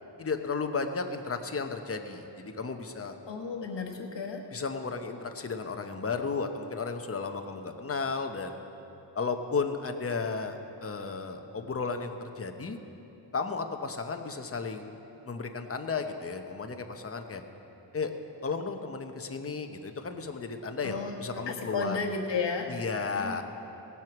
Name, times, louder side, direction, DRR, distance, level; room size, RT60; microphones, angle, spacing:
voice 1, 0.2-3.2 4.5-8.6 9.1-12.8 13.3-14.9 15.2-17.4 17.9-18.1 18.4-22.0 22.7-23.4, left 4 dB, 30° left, 6 dB, 0.8 m, -34 dB
voice 2, 3.3-4.4 20.8-21.2 21.5-22.7 23.1-23.4, left 4 dB, 75° left, 1 dB, 1.4 m, -33 dB
18.0 x 7.7 x 6.0 m, 3.0 s
wide cardioid pair, 95°, 43 cm